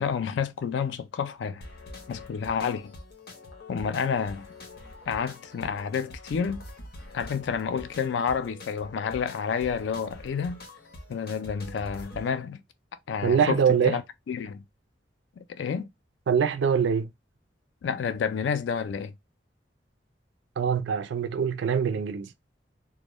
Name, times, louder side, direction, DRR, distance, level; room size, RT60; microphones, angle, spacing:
voice 1, 0.0-1.6 2.1-2.9 3.7-4.5 5.1-6.6 7.1-10.6 11.1-12.6 13.1-14.0 14.3-14.6 15.4-15.9 17.8-19.1, left 6 dB, 85° left, 0.3 m, -29 dB
sound 1, 1.6-12.3, left 2 dB, 60° left, 0.7 m, -45 dB
voice 2, 13.2-14.0 16.3-17.1 20.6-22.3, right 7 dB, 85° right, 0.3 m, -24 dB
2.1 x 2.1 x 2.9 m
head